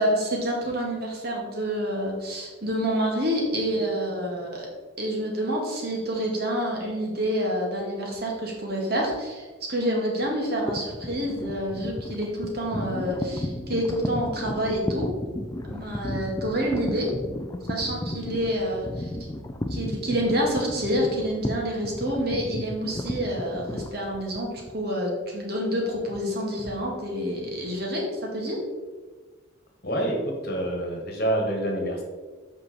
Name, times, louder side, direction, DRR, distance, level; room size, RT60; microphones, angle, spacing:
voice 1, 0.0-4.7 5.0-15.1 15.7-17.1 17.7-19.1 19.7-24.5 24.7-28.6, equal, 50° right, -1 dB, 2.0 m, -28 dB
sound 1, 10.7-24.7, left 1 dB, 15° left, 0.4 m, -33 dB
voice 2, 29.8-32.0, right 1 dB, 50° left, 1 dB, 1.4 m, -27 dB
7.8 x 5.5 x 4.3 m, 1.3 s
head